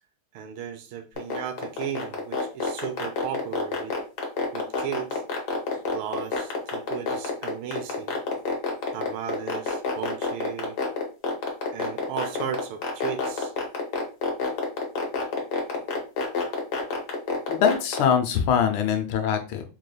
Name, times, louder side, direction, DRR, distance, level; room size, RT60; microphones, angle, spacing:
voice 1, 0.3-4.0 4.5-5.2 5.9-8.2 8.9-10.8 11.7-13.5, right 9 dB, 75° right, 1.3 m, -35 dB
sound 1, 1.2-18.1, left 5 dB, 55° left, 1.3 m, -27 dB
voice 2, 17.5-19.6, left 7 dB, 75° left, 1.4 m, -23 dB
4.7 x 3.2 x 2.2 m
omnidirectional pair, 2.4 m